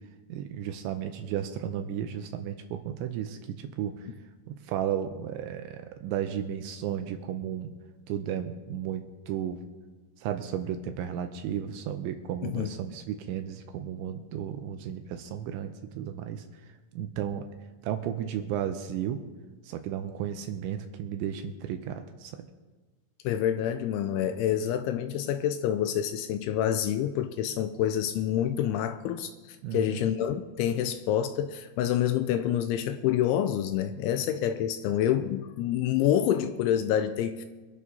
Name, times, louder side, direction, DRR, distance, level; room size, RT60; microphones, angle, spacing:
voice 1, 0.3-4.1 4.5-7.7 8.1-9.6 10.2-16.5 16.9-17.4 17.8-19.2 19.6-22.4 29.6-30.0, right 9 dB, 80° right, 2.8 m, -34 dB
voice 2, 23.2-37.5, left 10 dB, 85° left, 2.8 m, -27 dB
25.5 x 11.0 x 2.8 m
omnidirectional pair, 5.7 m